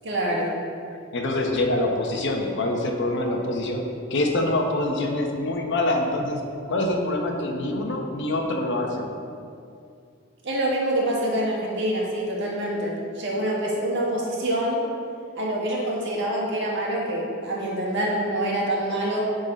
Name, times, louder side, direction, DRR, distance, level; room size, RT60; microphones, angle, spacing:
voice 1, 0.0-0.5 10.4-14.8 15.3-19.2, right 1 dB, 60° right, -3 dB, 1.5 m, -26 dB
voice 2, 1.1-3.8 4.1-6.4 6.7-9.1, left 1 dB, 60° left, 2 dB, 0.9 m, -25 dB
9.7 x 3.9 x 5.1 m, 2.4 s
head